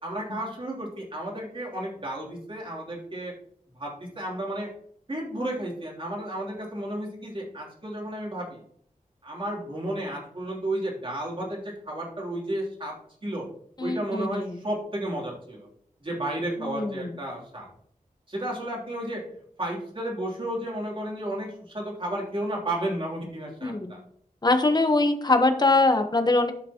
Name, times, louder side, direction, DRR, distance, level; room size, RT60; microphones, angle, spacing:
voice 1, 0.0-3.3 3.7-4.7 5.1-8.6 9.2-12.9 13.2-13.5 13.8-15.7 16.0-17.7 18.3-19.2 19.6-24.0, right 1 dB, 40° right, -3 dB, 3.3 m, -32 dB
voice 2, 13.8-14.6 16.6-17.1 23.6-23.9 24.4-26.5, left 2 dB, 30° left, 6 dB, 1.1 m, -23 dB
13.0 x 6.0 x 3.0 m, 0.64 s
wide cardioid pair, 115°, 14 cm